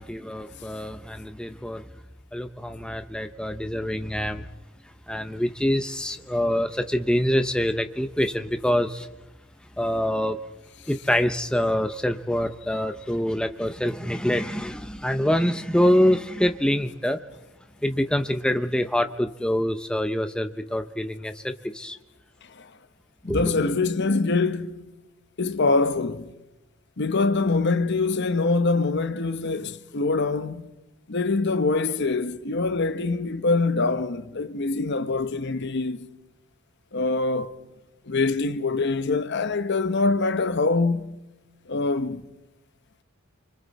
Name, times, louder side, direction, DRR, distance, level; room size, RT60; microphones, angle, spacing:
voice 1, 0.0-1.8 2.3-4.5 5.1-9.1 9.8-10.4 10.9-17.2 17.8-22.0 23.2-23.5, equal, 5° left, 0.7 m, -25 dB
voice 2, 23.2-24.9 25.4-26.3 27.0-30.6 31.1-36.0 36.9-37.5 38.1-41.2 41.7-42.2, left 3 dB, 55° left, 0.9 m, -24 dB
28.5 x 25.0 x 4.2 m
head